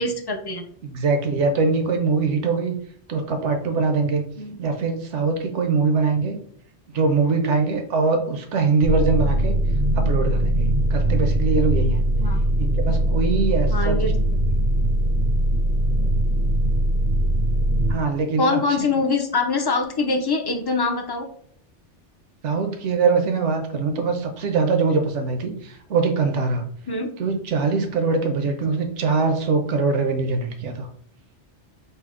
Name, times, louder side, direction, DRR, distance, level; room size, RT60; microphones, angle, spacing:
voice 1, 0.0-0.6 4.4-4.6 12.2-12.4 13.7-14.4 18.4-21.3 26.9-27.1, left 3 dB, 40° left, 3 dB, 0.3 m, -24 dB
voice 2, 0.8-2.7 3.1-4.2 4.6-6.4 6.9-9.6 9.9-12.0 12.6-14.1 17.9-18.6 22.4-26.6 27.2-30.9, right 4 dB, 85° right, 5 dB, 1.1 m, -22 dB
sound 1, 8.8-17.9, right 1 dB, 55° right, 0.7 m, -21 dB
5.5 x 2.0 x 3.7 m, 0.62 s
omnidirectional pair, 1.2 m